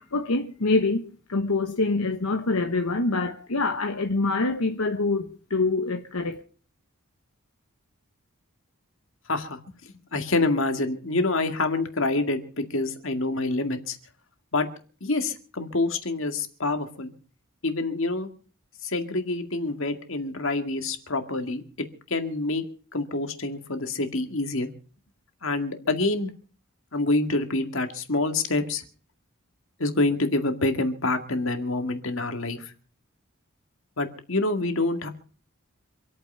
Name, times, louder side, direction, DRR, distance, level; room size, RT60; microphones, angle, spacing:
voice 1, 0.0-6.4, left 3 dB, 80° left, 1.0 m, -25 dB
voice 2, 9.3-9.6 10.1-14.0 14.5-14.7 15.0-17.1 17.6-18.3 18.8-21.6 22.1-22.6 22.9-24.7 25.4-26.3 26.9-28.8 29.8-32.7 34.0-35.1, left 2 dB, 60° left, 2.1 m, -26 dB
26.5 x 9.0 x 5.5 m
head